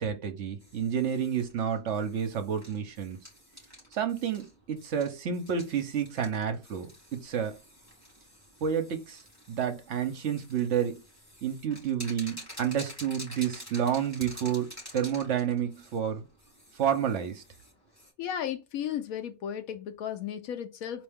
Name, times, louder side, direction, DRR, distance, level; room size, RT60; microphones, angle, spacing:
voice 1, 0.0-3.2 3.9-7.6 8.6-9.2 9.5-11.0 11.4-16.2 16.7-17.4, right 8 dB, 60° right, 0.9 m, -30 dB
sound 1, 0.6-18.1, equal, 10° left, 2.9 m, -49 dB
voice 2, 18.2-21.0, left 9 dB, 75° left, 1.2 m, -34 dB
4.3 x 3.0 x 3.5 m
omnidirectional pair, 1.5 m